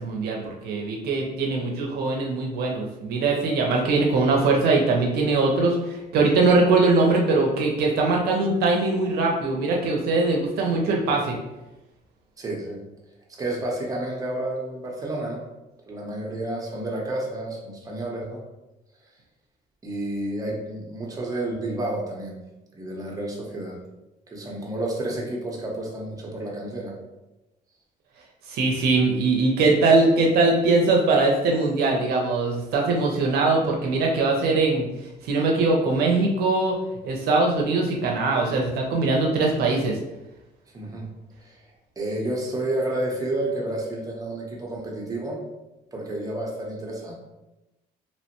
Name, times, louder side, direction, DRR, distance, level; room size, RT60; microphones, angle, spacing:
voice 1, 0.0-11.4 28.5-34.9 35.2-36.8 37.0-40.0, right 3 dB, 70° right, 0 dB, 0.5 m, -21 dB
voice 2, 12.4-12.8 13.3-15.4 15.9-18.4 19.8-22.4 22.7-23.8 24.3-26.9 40.7-41.1 41.4-41.6 42.0-45.4 45.9-47.1, right 1 dB, 20° right, -2 dB, 0.7 m, -30 dB
2.9 x 2.1 x 2.8 m, 0.98 s
cardioid pair, 110°, 17 cm